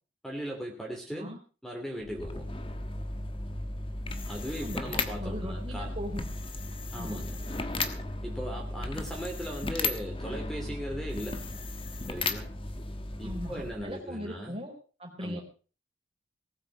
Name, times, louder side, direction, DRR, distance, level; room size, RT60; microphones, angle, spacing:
voice 1, 0.2-1.3 1.6-2.5 4.3-5.9 6.9-7.4 8.2-11.4 12.1-12.5 13.2-14.6 15.2-15.4, equal, ahead, 0 dB, 2.8 m, -38 dB
sound 1, 2.0-14.0, left 2 dB, 30° left, 1.3 m, -35 dB
voice 2, 5.2-6.2 6.9-7.2 13.2-14.7 15.0-15.4, equal, 30° right, 1 dB, 4.2 m, -39 dB
19.0 x 8.7 x 6.2 m, 0.38 s
head